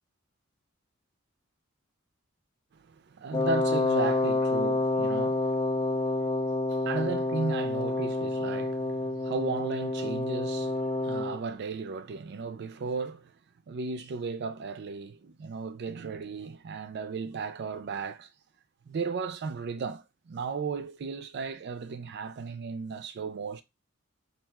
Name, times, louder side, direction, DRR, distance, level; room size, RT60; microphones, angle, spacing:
voice 1, 2.9-6.1 6.7-13.3 13.7-18.3 18.9-23.6, right 5 dB, 55° right, 0.4 m, -35 dB
Wind instrument woodwind instrument, 3.3-11.4, left 2 dB, 20° left, 0.3 m, -28 dB
4.4 x 2.4 x 2.3 m
head